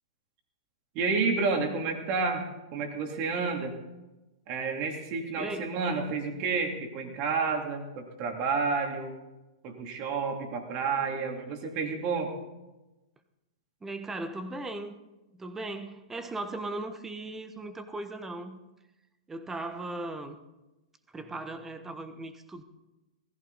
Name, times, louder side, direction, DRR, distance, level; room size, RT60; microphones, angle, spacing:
voice 1, 0.9-3.7 4.5-9.1 9.6-12.3, right 4 dB, 40° right, 3.1 m, -30 dB
voice 2, 5.4-5.8 13.8-15.0 15.4-18.6 19.3-20.4 21.1-22.6, right 2 dB, 10° right, 1.3 m, -37 dB
20.0 x 15.0 x 4.1 m
figure-of-eight pair, 105°, 3 cm